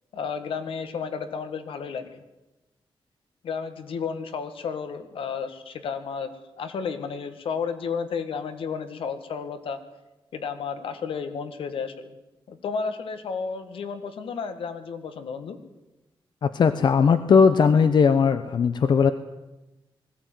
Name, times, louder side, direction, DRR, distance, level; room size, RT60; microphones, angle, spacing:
voice 1, 0.1-2.1 3.4-9.8 10.3-12.1 12.5-15.6, left 5 dB, 85° left, 10 dB, 2.0 m, -32 dB
voice 2, 16.4-19.1, left 6 dB, 55° left, 11 dB, 1.0 m, -18 dB
20.0 x 15.5 x 9.3 m, 1.0 s
wide cardioid pair, 155°, 9 cm